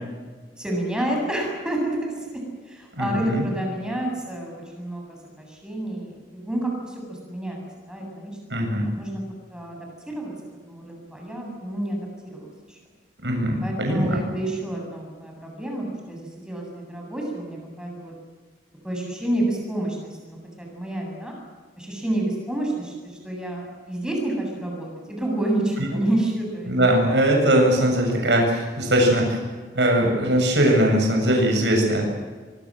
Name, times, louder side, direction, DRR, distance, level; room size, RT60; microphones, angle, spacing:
voice 1, 0.6-2.4 2.7-7.6 7.9-8.4 8.8-9.2 9.5-10.3 10.7-12.8 13.6-18.1 18.8-21.3 21.8-26.7, right 1 dB, 5° right, 0 dB, 7.7 m, -29 dB
voice 2, 2.9-3.4 8.5-8.9 13.2-14.2 26.7-29.4 29.7-32.1, right 1 dB, 80° right, 1 dB, 7.6 m, -20 dB
25.0 x 23.5 x 7.7 m, 1.4 s
head